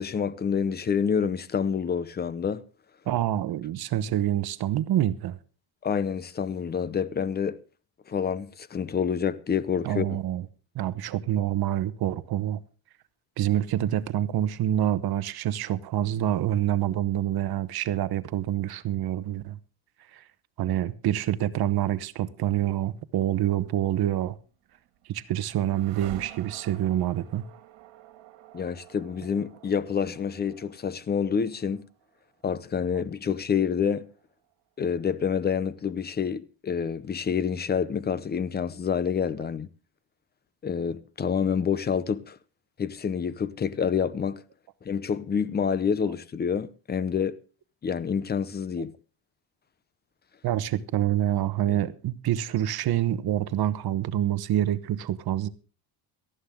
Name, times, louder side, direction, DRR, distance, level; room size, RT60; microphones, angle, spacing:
voice 1, 0.0-2.6 5.8-7.6 8.1-10.2 28.5-31.9 32.4-34.1 34.8-39.7 40.6-42.4 42.8-44.4 44.8-47.4 47.8-48.9 51.7-51.8, left 7 dB, 20° left, 0.7 m, -28 dB
voice 2, 3.1-5.4 9.8-10.4 10.7-12.6 13.4-19.6 20.1-20.2 20.6-24.4 25.1-27.4 32.9-33.0 50.4-55.5, right 12 dB, 55° right, 1.0 m, -27 dB
sound 1, 24.5-34.5, right 11 dB, 70° right, 2.2 m, -50 dB
18.5 x 13.5 x 3.6 m
cardioid pair, 150°, 44 cm